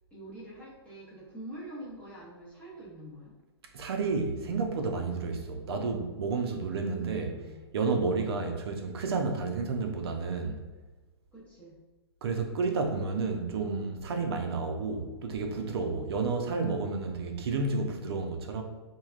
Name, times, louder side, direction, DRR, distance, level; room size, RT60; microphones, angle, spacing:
voice 1, 0.1-3.3 6.8-7.6 11.3-11.8 16.1-16.6, right 1 dB, 10° left, -8 dB, 0.6 m, -45 dB
voice 2, 3.7-7.3 7.7-10.6 12.2-18.6, right 4 dB, 65° right, 4 dB, 0.5 m, -31 dB
3.2 x 2.2 x 2.4 m, 1.2 s
hypercardioid pair, 145°, 14 cm